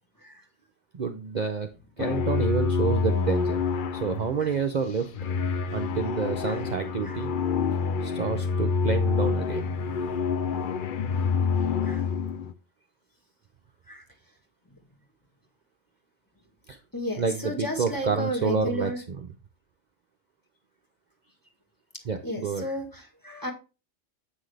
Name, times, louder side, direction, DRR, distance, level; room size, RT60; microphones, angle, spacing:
voice 1, 0.9-1.7 2.0-3.6 3.9-5.1 5.7-7.3 8.0-9.7 16.7-16.8 17.2-19.2 22.0-22.7, right 5 dB, 45° right, 5 dB, 0.7 m, -29 dB
sound 1, 2.0-12.5, left 5 dB, 55° left, 0.6 m, -27 dB
voice 2, 16.9-19.0 22.2-23.5, equal, 15° left, 2 dB, 1.7 m, -33 dB
8.1 x 6.1 x 3.3 m, 0.30 s
omnidirectional pair, 1.3 m